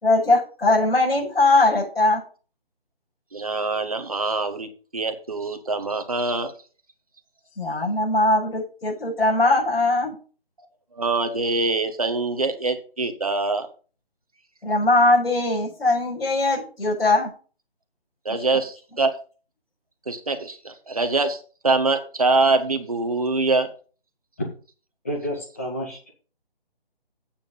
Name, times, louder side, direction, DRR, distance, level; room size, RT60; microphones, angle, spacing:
voice 1, 0.0-2.2 7.6-10.1 14.6-17.3, left 2 dB, 80° left, -4 dB, 6.9 m, -20 dB
voice 2, 3.3-6.5 10.9-13.7 18.2-19.1 20.1-23.7, right 3 dB, 40° right, 7 dB, 1.3 m, -24 dB
voice 3, 25.0-26.1, equal, 15° left, 0 dB, 1.6 m, -30 dB
8.9 x 7.5 x 5.5 m, 0.39 s
hypercardioid pair, 180°, 30 cm